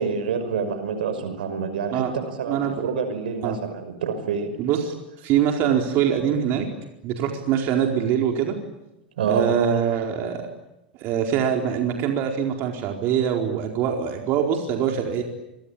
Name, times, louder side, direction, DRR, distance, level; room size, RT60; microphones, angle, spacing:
voice 1, 0.0-4.5 9.2-9.5, right 6 dB, 70° right, 10 dB, 5.8 m, -27 dB
voice 2, 2.5-2.8 3.4-3.6 4.6-4.8 5.2-6.7 7.0-8.6 9.3-10.4 11.0-15.2, right 8 dB, 45° right, 2 dB, 4.5 m, -23 dB
28.5 x 24.0 x 8.7 m, 0.94 s
hypercardioid pair, 105°, 5 cm